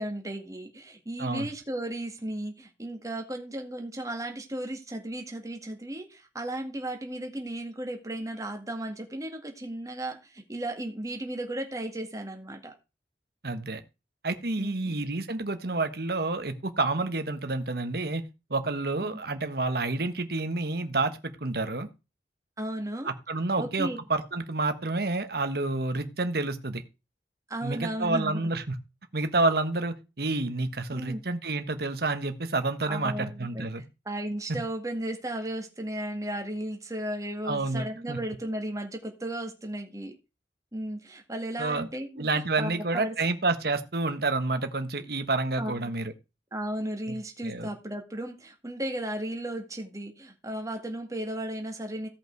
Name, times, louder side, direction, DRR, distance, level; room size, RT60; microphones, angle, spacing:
voice 1, 0.0-12.7 14.6-14.9 22.6-23.1 23.6-24.0 27.5-28.4 30.9-31.2 32.9-40.2 40.7-42.3 42.6-43.1 45.6-45.9 46.5-52.1, right 1 dB, 20° right, 4 dB, 2.0 m, -35 dB
voice 2, 13.4-13.8 14.2-18.2 18.5-21.9 23.0-26.8 27.6-28.7 29.1-33.8 34.5-34.6 37.4-38.2 41.6-41.9 42.2-46.1 47.1-47.2 47.4-47.7, right 3 dB, 60° right, 9 dB, 1.4 m, -29 dB
16.5 x 5.7 x 4.6 m, 0.28 s
head